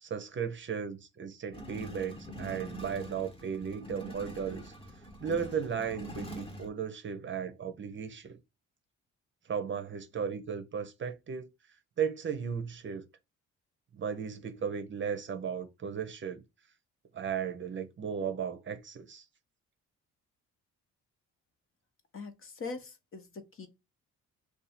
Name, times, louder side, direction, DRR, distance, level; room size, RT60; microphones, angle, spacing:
voice 1, 0.0-4.7 5.2-8.4 9.5-11.5 12.0-13.1 13.9-16.4 17.1-19.2, right 7 dB, 40° right, 0.6 m, -35 dB
sound 1, 1.5-6.7, equal, 20° left, 1.0 m, -44 dB
voice 2, 22.1-23.7, left 4 dB, 45° left, 0.9 m, -42 dB
2.6 x 2.4 x 4.1 m
cardioid pair, 90°, 30 cm